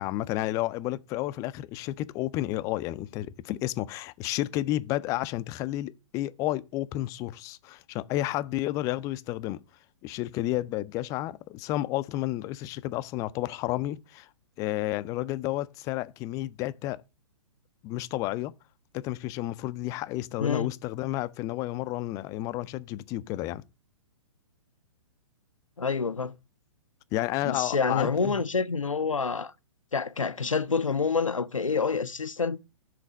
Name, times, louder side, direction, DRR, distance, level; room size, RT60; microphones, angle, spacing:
voice 1, 0.0-9.6 10.0-14.3 14.6-17.0 17.8-18.5 18.9-23.6 27.1-28.4, left 15 dB, 20° left, 0.4 m, -31 dB
voice 2, 25.8-26.3 27.4-29.5 29.9-32.6, left 5 dB, 85° left, 0.5 m, -27 dB
7.6 x 3.9 x 6.1 m
figure-of-eight pair, 115°, 16 cm